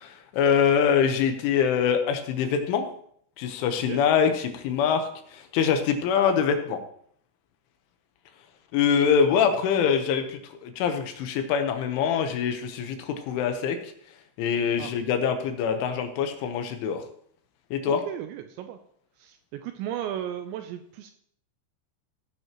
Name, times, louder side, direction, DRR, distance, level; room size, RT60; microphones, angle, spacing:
voice 1, 0.0-2.9 3.4-6.8 8.7-13.9 14.4-17.0 17.7-18.0, left 7 dB, 80° left, 7 dB, 3.5 m, -24 dB
voice 2, 17.9-18.8 19.2-21.1, right 10 dB, 85° right, 7 dB, 2.7 m, -35 dB
16.5 x 9.2 x 3.0 m, 0.63 s
omnidirectional pair, 5.7 m